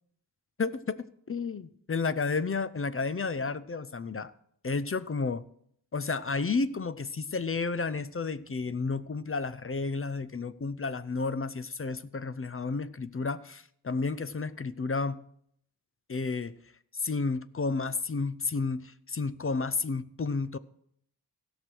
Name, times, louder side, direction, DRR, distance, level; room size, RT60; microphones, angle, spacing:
voice 1, 0.6-4.3 4.6-5.4 5.9-15.2 16.1-16.5 16.9-20.6, left 4 dB, 30° left, 0.5 m, -31 dB
16.5 x 6.1 x 6.2 m
wide cardioid pair, 110°, 43 cm